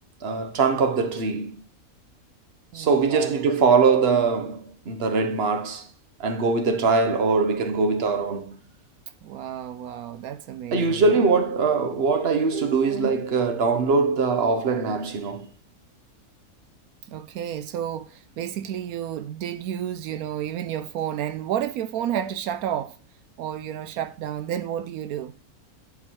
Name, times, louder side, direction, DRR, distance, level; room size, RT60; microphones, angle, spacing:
voice 1, 0.2-1.5 2.7-5.9 6.2-8.6 10.7-15.5, right 4 dB, 45° right, 1.3 m, -22 dB
voice 2, 2.7-3.5 9.2-11.3 17.1-23.0 23.4-25.3, right 10 dB, 85° right, 1.1 m, -31 dB
10.5 x 4.7 x 4.6 m
omnidirectional pair, 1.5 m